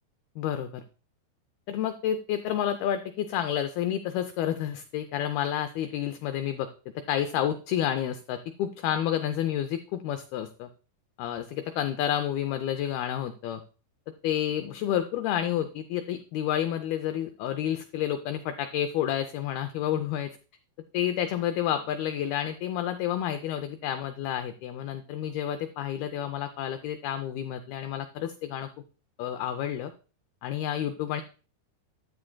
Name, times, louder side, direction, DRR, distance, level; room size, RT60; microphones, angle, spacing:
voice 1, 0.4-0.8 1.7-6.7 7.0-10.7 11.2-13.6 14.2-20.3 20.9-28.7 29.2-29.9 30.4-31.2, left 10 dB, 85° left, 8 dB, 2.2 m, -30 dB
11.0 x 10.5 x 2.2 m, 0.36 s
omnidirectional pair, 5.1 m